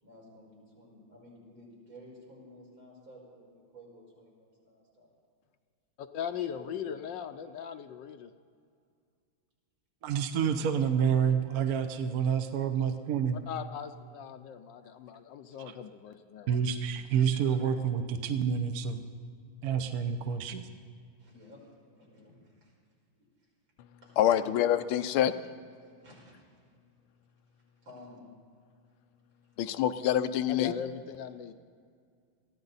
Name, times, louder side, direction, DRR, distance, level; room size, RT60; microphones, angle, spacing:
voice 1, 0.0-5.1 6.5-6.9 10.9-11.7 21.2-22.7 24.0-24.6 26.0-26.6 27.8-28.3, equal, 80° right, -4 dB, 5.9 m, -53 dB
voice 2, 6.0-8.3 13.5-16.6 30.5-31.5, left 8 dB, 70° left, 9 dB, 1.2 m, -39 dB
voice 3, 10.0-13.4 15.6-15.7 16.5-19.0 19.6-20.7, right 7 dB, 60° right, 7 dB, 1.0 m, -28 dB
voice 4, 24.2-25.3 29.6-30.7, left 11 dB, 85° left, 11 dB, 1.6 m, -26 dB
22.5 x 15.0 x 4.0 m, 2.2 s
omnidirectional pair, 2.3 m